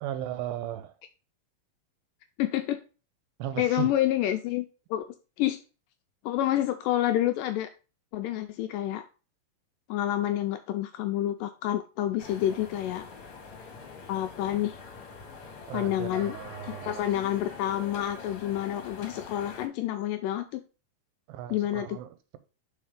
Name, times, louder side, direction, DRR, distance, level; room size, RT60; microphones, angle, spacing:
voice 1, 0.0-0.9 3.4-3.9 15.7-17.0 21.3-22.4, right 11 dB, 85° right, 2.4 m, -36 dB
voice 2, 2.4-2.8 3.6-4.7 4.9-5.0 5.4-5.6 6.3-7.7 8.1-9.1 9.9-13.1 14.1-14.8 15.7-16.4 16.6-20.6 21.5-22.0, left 12 dB, 85° left, 2.0 m, -28 dB
sound 1, 12.2-19.7, left 5 dB, 55° left, 1.6 m, -44 dB
5.7 x 4.5 x 4.9 m
omnidirectional pair, 4.3 m